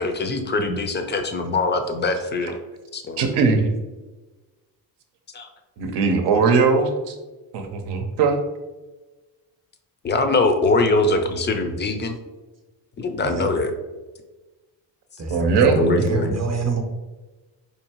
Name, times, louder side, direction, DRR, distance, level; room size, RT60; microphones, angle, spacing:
voice 1, 0.0-2.6 2.9-3.2 5.3-5.5 10.0-12.2 13.0-13.7 15.8-16.3, left 2 dB, 25° left, 6 dB, 0.4 m, -22 dB
voice 2, 3.2-3.7 5.8-7.1 7.5-8.4 15.3-15.8, right 4 dB, 75° right, 6 dB, 0.7 m, -19 dB
voice 3, 15.2-16.8, right 3 dB, 40° right, 3 dB, 0.8 m, -26 dB
4.5 x 2.7 x 2.9 m, 1.2 s
cardioid pair, 100°, 42 cm